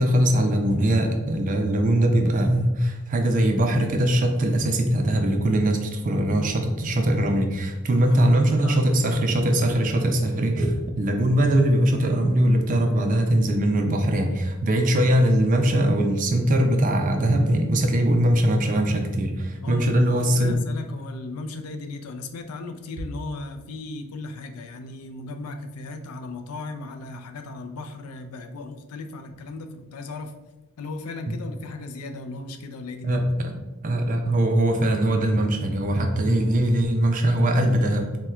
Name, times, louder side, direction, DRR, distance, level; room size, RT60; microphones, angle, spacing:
voice 1, 0.0-20.6 31.3-31.4 33.0-33.6 33.8-38.1, right 1 dB, 40° right, 4 dB, 0.4 m, -21 dB
voice 2, 8.0-9.0 19.6-30.3 30.8-33.2, left 3 dB, 90° left, 7 dB, 0.4 m, -36 dB
4.2 x 2.1 x 2.3 m, 1.0 s
head